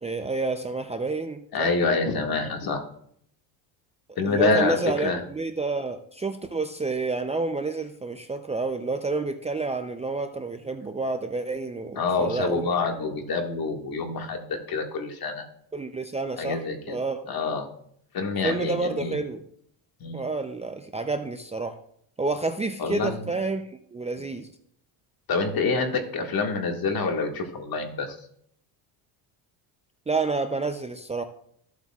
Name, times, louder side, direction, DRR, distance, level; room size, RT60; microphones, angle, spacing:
voice 1, 0.0-1.7 4.2-12.7 15.7-17.2 18.4-19.4 20.1-21.8 22.2-24.5 30.1-31.2, right 3 dB, 15° right, 7 dB, 0.6 m, -29 dB
voice 2, 1.5-2.8 4.2-5.2 12.0-15.5 16.4-17.0 17.3-17.7 18.1-19.2 20.0-20.2 22.8-23.2 25.3-28.2, left 4 dB, 45° left, 3 dB, 2.0 m, -26 dB
15.0 x 8.2 x 2.4 m, 0.66 s
cardioid pair, 95°, 48 cm